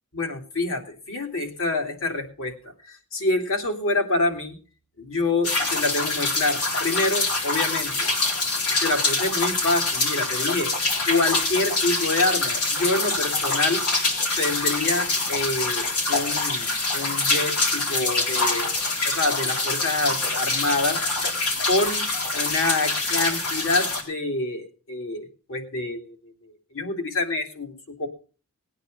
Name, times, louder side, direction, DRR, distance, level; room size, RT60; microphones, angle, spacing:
voice 1, 0.1-2.5 2.8-4.6 5.0-8.1 8.8-10.7 11.1-13.8 14.4-18.7 19.0-21.0 21.6-22.1 22.3-26.2 26.4-28.1, left 2 dB, 60° left, 4 dB, 2.9 m, -26 dB
sound 1, 5.4-24.0, left 2 dB, 85° left, 4.0 m, -25 dB
19.5 x 9.3 x 5.3 m, 0.38 s
head